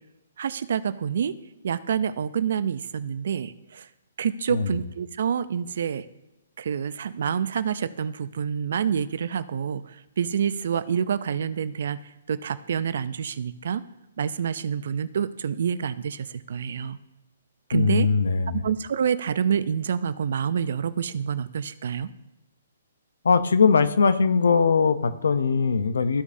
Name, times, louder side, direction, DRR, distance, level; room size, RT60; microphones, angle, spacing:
voice 1, 0.4-1.4 1.6-3.9 4.2-6.1 6.6-12.0 12.3-13.8 14.2-17.0 17.7-18.1 18.5-22.1, right 7 dB, 65° right, 15 dB, 0.5 m, -27 dB
voice 2, 17.7-18.6 23.2-26.2, left 5 dB, 80° left, 12 dB, 0.7 m, -21 dB
14.0 x 4.9 x 2.7 m, 0.97 s
hypercardioid pair, 145°, 0 cm